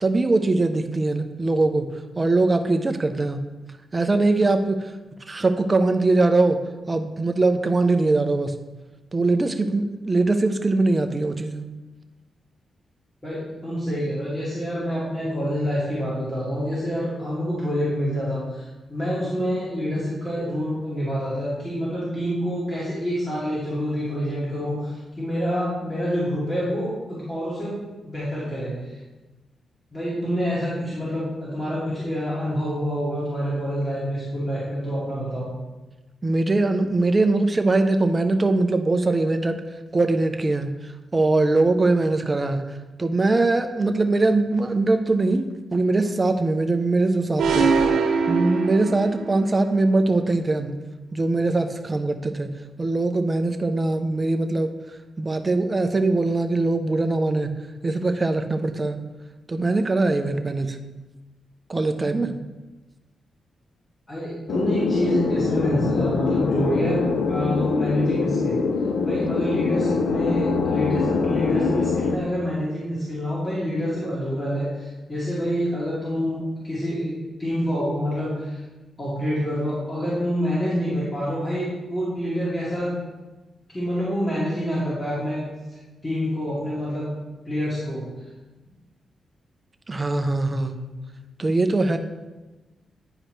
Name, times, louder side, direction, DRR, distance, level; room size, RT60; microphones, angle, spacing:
voice 1, 0.0-1.9 2.2-3.4 3.9-4.8 5.3-6.6 6.9-8.5 9.1-11.7 36.2-39.6 39.9-40.8 41.1-42.6 43.0-47.7 48.3-50.8 51.1-52.5 52.8-54.7 55.2-57.6 57.8-59.0 59.5-60.8 61.7-62.4 69.2-69.4 89.9-90.7 91.4-92.0, right 2 dB, 25° right, 7 dB, 0.6 m, -21 dB
voice 2, 13.2-27.8 28.0-29.0 29.9-35.5 64.1-68.6 69.0-78.6 79.0-83.0 83.7-87.1 87.5-88.0, equal, 25° left, -9 dB, 2.3 m, -27 dB
sound 1, 47.4-49.4, right 4 dB, 90° right, 0.6 m, -22 dB
sound 2, 64.5-72.2, left 4 dB, 80° left, 0.5 m, -23 dB
9.8 x 4.9 x 3.2 m, 1.1 s
cardioid pair, 115°, 0 cm